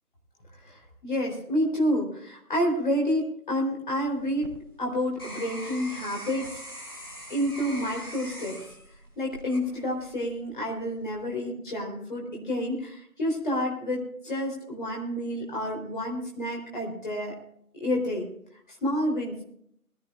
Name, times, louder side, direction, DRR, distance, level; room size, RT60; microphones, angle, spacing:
voice 1, 0.6-4.5 4.8-6.6 7.3-8.6 9.2-17.3 17.8-18.3 18.8-19.4, equal, 30° left, 0 dB, 3.8 m, -29 dB
sound 1, 4.1-10.2 10.8-11.2, equal, 15° left, 1.8 m, -42 dB
21.5 x 13.5 x 2.5 m, 0.68 s
figure-of-eight pair, 165°, 46 cm